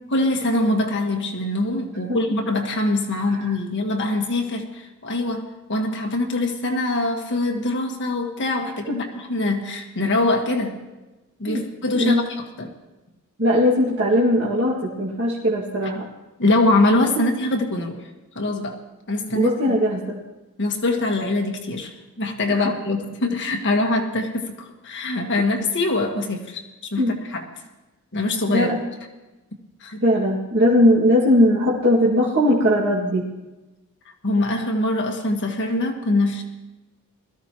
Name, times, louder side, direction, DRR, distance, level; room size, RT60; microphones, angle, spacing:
voice 1, 0.1-10.8 11.4-12.7 16.4-18.1 18.3-18.8 19.1-19.7 20.6-27.4 28.1-28.7 29.8-30.0 34.2-36.4, left 2 dB, 55° left, 2 dB, 1.6 m, -23 dB
voice 2, 13.4-16.1 19.3-20.2 27.0-27.2 28.5-28.8 30.0-33.2, equal, 55° right, -6 dB, 2.2 m, -19 dB
21.5 x 14.5 x 3.0 m, 1.1 s
head